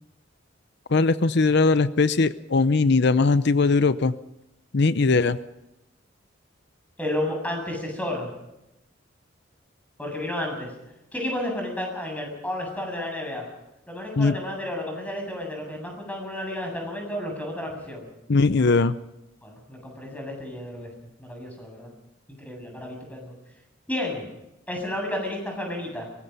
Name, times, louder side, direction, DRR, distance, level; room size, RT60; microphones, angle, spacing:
voice 1, 0.9-4.1 4.7-5.4 14.2-14.4 18.3-19.0, left 3 dB, 60° left, 14 dB, 0.7 m, -20 dB
voice 2, 7.0-8.3 10.0-10.7 11.1-13.5 13.9-18.1 19.4-20.9 21.2-21.9 22.3-23.3 23.9-24.3 24.7-26.1, left 1 dB, 10° left, 2 dB, 7.8 m, -32 dB
23.5 x 19.5 x 5.6 m, 0.90 s
head